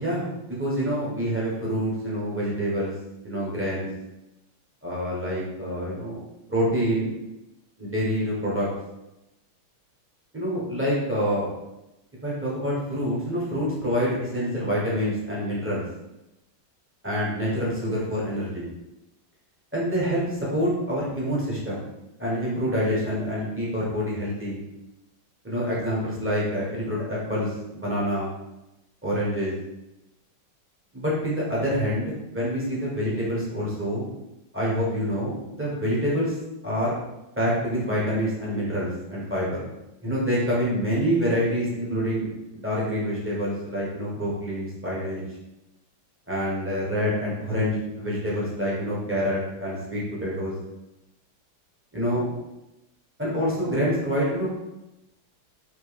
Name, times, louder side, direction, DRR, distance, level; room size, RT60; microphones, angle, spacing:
voice 1, 0.0-2.9 3.2-3.9 4.8-6.2 6.5-7.1 7.8-8.7 10.3-11.5 12.2-15.8 17.0-18.7 19.7-21.8 22.2-24.6 25.4-28.3 29.0-29.5 30.9-34.1 34.5-36.4 36.6-36.9 37.4-39.6 40.0-42.3 42.5-45.2 46.3-50.5 51.9-52.2 53.2-54.5, equal, 10° right, -7 dB, 0.5 m, -26 dB
4.5 x 2.8 x 3.3 m, 0.93 s
omnidirectional pair, 2.3 m